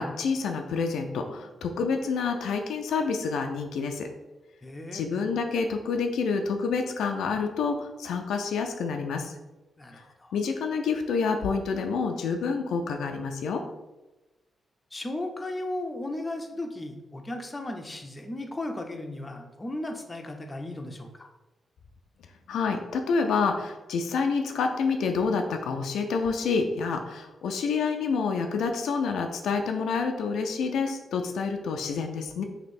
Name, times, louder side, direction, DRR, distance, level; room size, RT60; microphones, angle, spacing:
voice 1, 0.0-4.1 4.9-9.3 10.3-13.6 22.5-32.4, left 5 dB, 85° left, 4 dB, 0.3 m, -28 dB
voice 2, 4.6-5.0 9.8-10.4 14.9-21.3, left 1 dB, 25° left, 4 dB, 0.6 m, -36 dB
3.1 x 2.7 x 4.1 m, 1.1 s
cardioid pair, 60°, 0 cm